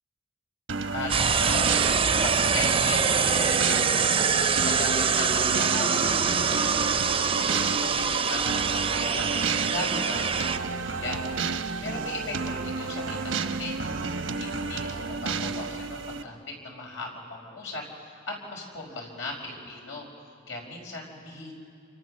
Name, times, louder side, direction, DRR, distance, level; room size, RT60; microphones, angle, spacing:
sound 1, 0.7-16.2, right 4 dB, 90° right, 1.1 m, -31 dB
voice 1, 0.9-1.7 2.1-3.8 4.2-6.8 7.2-9.3 9.7-11.2 11.8-13.8 14.2-20.1 20.5-21.5, left 2 dB, 90° left, 0 dB, 5.5 m, -37 dB
sound 2, 1.1-10.6, right 6 dB, 30° right, 0.6 m, -24 dB
28.0 x 28.0 x 6.4 m, 2.4 s
head